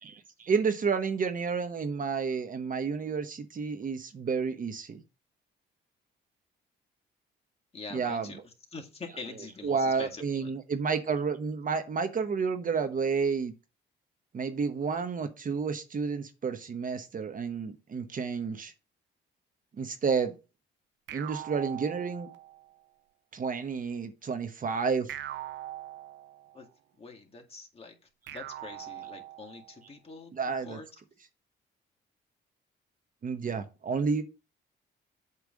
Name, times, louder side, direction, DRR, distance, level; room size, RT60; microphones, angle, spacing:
voice 1, 0.0-5.0 7.9-8.3 9.6-13.5 14.3-18.7 19.8-20.3 21.1-22.3 23.3-25.1 30.4-30.8 33.2-34.2, right 5 dB, 45° right, 1.1 m, -30 dB
voice 2, 7.7-10.5 26.5-26.7 27.0-28.0 28.3-31.0, left 4 dB, 30° left, 2.0 m, -45 dB
sound 1, 21.1-22.7 25.1-26.7 28.3-29.8, right 13 dB, 70° right, 0.6 m, -42 dB
8.4 x 3.3 x 6.4 m
cardioid pair, 90°, 20 cm